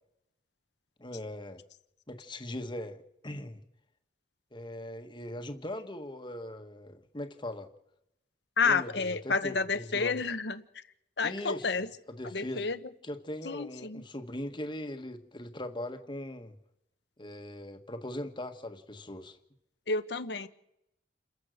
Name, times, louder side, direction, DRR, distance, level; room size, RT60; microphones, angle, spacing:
voice 1, 1.0-1.6 2.1-3.6 4.5-7.7 8.6-10.2 11.2-11.8 12.1-12.7 13.0-16.5 17.2-19.4, left 1 dB, 25° left, 7 dB, 1.5 m, -40 dB
voice 2, 8.6-10.8 11.2-11.9 12.3-12.8 13.4-14.0 19.9-20.5, left 4 dB, 65° left, 11 dB, 1.2 m, -30 dB
28.5 x 14.5 x 6.6 m, 0.83 s
head